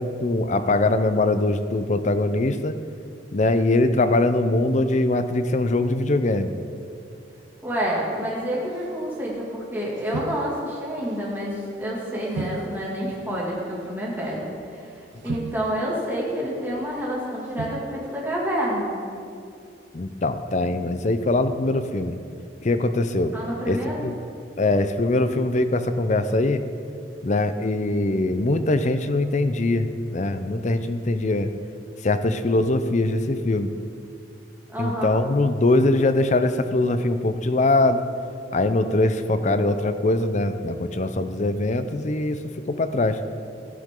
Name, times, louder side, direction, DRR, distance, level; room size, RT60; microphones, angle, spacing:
voice 1, 0.0-2.8 3.3-6.5 19.9-22.2 22.6-23.3 23.7-24.1 24.6-26.6 27.2-31.5 32.0-33.7 34.8-38.0 38.5-42.4 42.7-43.2, left 2 dB, 40° left, 10 dB, 0.6 m, -22 dB
voice 2, 7.6-19.0 23.3-24.1 34.7-35.2, equal, 10° right, -5 dB, 2.2 m, -28 dB
sound 1, 8.4-9.6 10.0-11.1 11.4-11.6 12.3-13.0 13.4-13.9 14.6-14.7 15.2-16.1 16.6-17.1 17.4-18.2, right 5 dB, 75° right, 0.3 m, -37 dB
13.5 x 11.5 x 3.7 m, 2.5 s
head